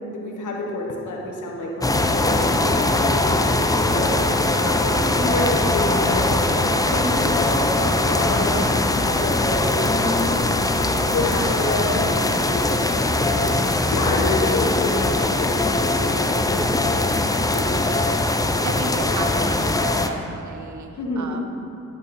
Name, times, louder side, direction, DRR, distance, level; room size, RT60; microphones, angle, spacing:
voice 1, 0.1-4.1 4.5-8.6 8.9-10.5 11.1-13.6 13.9-17.7 21.0-21.4, left 2 dB, 85° left, 0 dB, 1.0 m, -28 dB
sound 1, 1.8-20.1, left 2 dB, 10° left, 0.5 m, -21 dB
voice 2, 5.3-5.6 18.3-21.4, right 4 dB, 70° right, 6 dB, 0.7 m, -34 dB
10.5 x 3.7 x 4.2 m, 2.7 s
cardioid pair, 45°, 30 cm